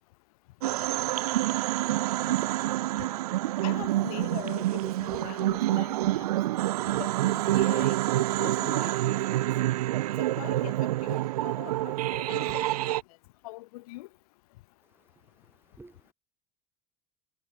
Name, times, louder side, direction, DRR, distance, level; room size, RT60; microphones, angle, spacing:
sound 1, 0.6-13.0, right 15 dB, 85° right, 0.7 m, -27 dB
voice 1, 3.6-6.3 7.0-9.4 10.2-12.9 13.4-14.1, left 20 dB, 75° left, 1.0 m, -42 dB
voice 2, 15.4-16.1, right 2 dB, 10° right, 1.9 m, -54 dB
hypercardioid pair, 85°, 19 cm